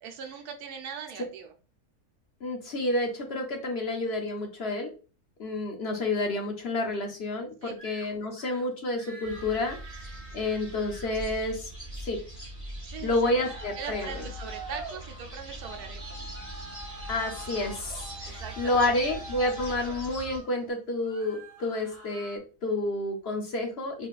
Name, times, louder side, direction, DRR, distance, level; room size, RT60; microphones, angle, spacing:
voice 1, 0.0-1.5 7.6-7.7 12.8-13.3 13.8-16.3 18.3-18.9, right 7 dB, 85° right, 4 dB, 1.1 m, -41 dB
voice 2, 2.4-4.9 5.4-11.7 12.0-12.2 13.0-14.2 17.1-24.1, left 2 dB, 50° left, 2 dB, 0.9 m, -30 dB
sound 1, 7.8-8.1 8.3-8.7 8.9-11.1 13.2-15.4 16.3-18.1 19.5-20.5 20.9-22.4, right 2 dB, 25° right, 1.2 m, -50 dB
sound 2, 9.2-20.4, right 1 dB, 15° left, 1.8 m, -42 dB
Traffic noise roadway noise, 13.0-20.7, right 1 dB, 60° right, 0.3 m, -44 dB
4.0 x 3.8 x 2.4 m, 0.35 s
omnidirectional pair, 1.6 m